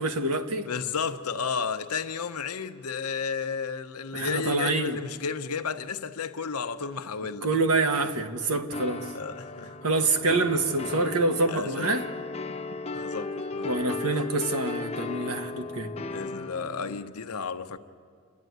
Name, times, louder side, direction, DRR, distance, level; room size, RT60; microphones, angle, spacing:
voice 1, 0.0-0.7 4.1-5.0 7.4-9.1 9.8-12.0 13.6-15.9, right 2 dB, 85° right, 1.3 m, -26 dB
voice 2, 0.7-7.5 9.1-9.7 11.5-11.9 12.9-14.0 16.1-17.8, left 5 dB, 85° left, 0.8 m, -33 dB
sound 1, 8.7-17.0, left 3 dB, 25° left, 0.7 m, -36 dB
27.5 x 11.0 x 9.3 m
head